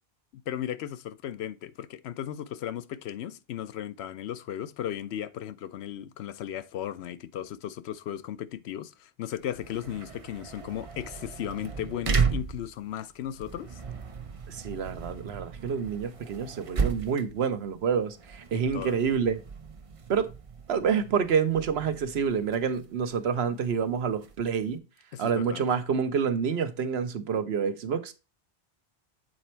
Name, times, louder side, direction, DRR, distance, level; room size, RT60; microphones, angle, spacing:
voice 1, 0.3-13.8 18.5-19.0 25.1-25.6, left 11 dB, 85° left, 0.8 m, -36 dB
sound 1, 9.4-24.7, right 5 dB, 40° right, 0.6 m, -35 dB
voice 2, 14.5-19.4 20.1-20.3 20.7-24.8 25.2-28.1, right 6 dB, 75° right, 1.0 m, -28 dB
7.6 x 4.2 x 4.4 m
omnidirectional pair, 1.1 m